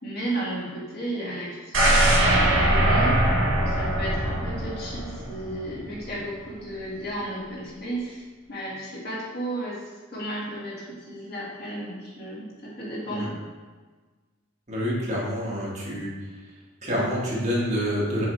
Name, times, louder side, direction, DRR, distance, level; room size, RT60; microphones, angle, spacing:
voice 1, 0.0-3.3 3.6-9.8 10.1-13.3, right 1 dB, 55° left, -6 dB, 2.0 m, -33 dB
sound 1, 1.7-5.7 6.1-6.2, right 1 dB, 85° right, 1.7 m, -21 dB
voice 2, 14.7-16.1 16.8-18.2, equal, 35° right, -6 dB, 1.9 m, -27 dB
7.2 x 4.7 x 3.3 m, 1.4 s
head